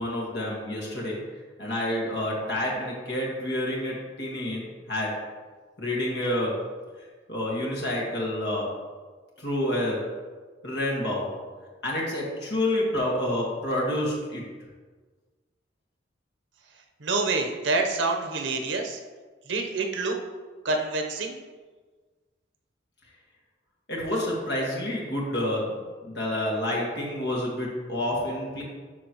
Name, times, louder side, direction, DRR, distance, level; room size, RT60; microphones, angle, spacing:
voice 1, 0.0-5.2 5.8-6.7 7.0-8.7 9.4-10.1 10.6-11.4 11.8-14.4 23.9-28.6, left 1 dB, 60° left, -3 dB, 1.9 m, -29 dB
voice 2, 17.0-19.0 19.5-20.2 20.6-21.4, right 3 dB, 85° right, 3 dB, 0.9 m, -27 dB
12.0 x 4.5 x 3.0 m, 1.4 s
head